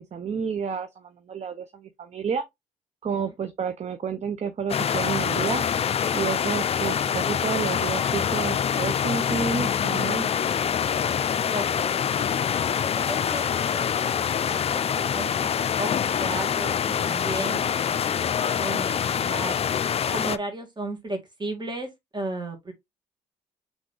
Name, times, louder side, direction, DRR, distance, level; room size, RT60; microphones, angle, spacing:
voice 1, 0.0-2.5 3.0-5.6 6.1-10.3, right 6 dB, 45° right, 0.6 m, -30 dB
sound 1, 4.7-20.4, left 8 dB, 40° left, 0.4 m, -25 dB
voice 2, 11.4-12.0 12.5-13.9 14.5-15.9 16.2-19.6 20.1-22.7, right 2 dB, 30° right, 2.1 m, -35 dB
3.7 x 3.6 x 3.7 m
supercardioid pair, 55°, 16 cm